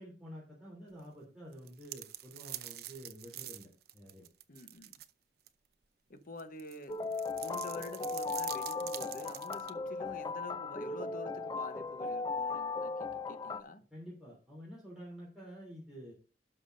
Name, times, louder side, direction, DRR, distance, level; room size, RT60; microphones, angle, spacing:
voice 1, 0.0-4.2 13.9-16.1, equal, 5° right, 3.2 m, -49 dB
sound 1, 1.5-5.1 5.5-5.6 6.4-9.7, right 13 dB, 65° right, 0.6 m, -45 dB
voice 2, 4.5-4.9 6.1-7.0 7.4-13.8, left 3 dB, 50° left, 1.0 m, -48 dB
sound 2, 6.9-13.6, left 4 dB, 25° left, 0.5 m, -37 dB
17.5 x 5.9 x 2.6 m
head